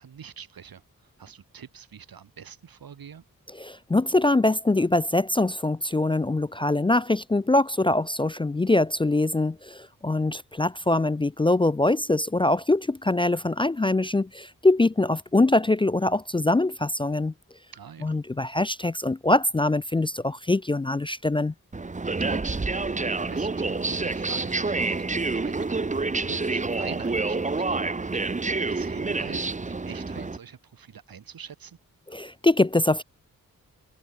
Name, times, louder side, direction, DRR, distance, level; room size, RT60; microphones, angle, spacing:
voice 1, 0.0-3.2 17.7-18.2 22.2-31.8, right 7 dB, 90° right, 1.6 m, -45 dB
voice 2, 3.6-17.3 18.0-21.5 32.1-33.0, left 2 dB, 15° left, 0.3 m, -23 dB
sound 1, 21.7-30.4, right 3 dB, 20° right, 0.8 m, -28 dB
wide cardioid pair, 65°, 34 cm